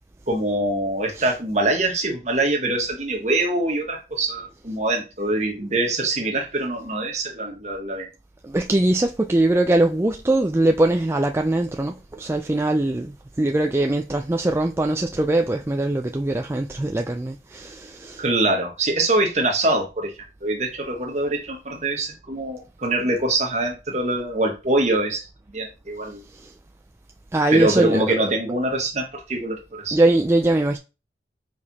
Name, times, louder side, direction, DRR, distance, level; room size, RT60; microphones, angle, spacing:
voice 1, 0.3-8.1 18.2-25.2 25.5-26.2 27.5-30.0, right 2 dB, 40° right, 1.4 m, -24 dB
voice 2, 8.4-18.2 26.3-26.5 27.3-28.0 29.9-30.8, right 2 dB, 15° right, 0.3 m, -21 dB
5.1 x 4.7 x 4.1 m
head